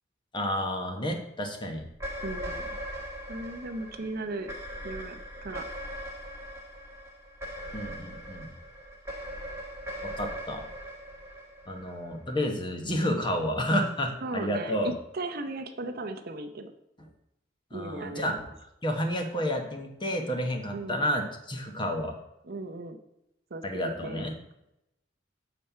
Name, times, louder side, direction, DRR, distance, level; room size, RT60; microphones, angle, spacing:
voice 1, 0.3-1.8 7.7-8.5 10.0-10.7 11.7-14.9 17.7-18.3 18.8-22.2 23.6-24.4, equal, 25° left, 4 dB, 1.0 m, -30 dB
sound 1, 1.9-12.4, equal, 15° right, 1.4 m, -40 dB
voice 2, 2.2-2.6 3.3-4.5 4.8-5.6 12.8-13.2 14.2-16.7 17.7-18.4 20.7-21.0 22.4-23.0 23.5-24.3, right 2 dB, 55° right, 6 dB, 0.6 m, -37 dB
7.0 x 4.3 x 5.6 m, 0.85 s
head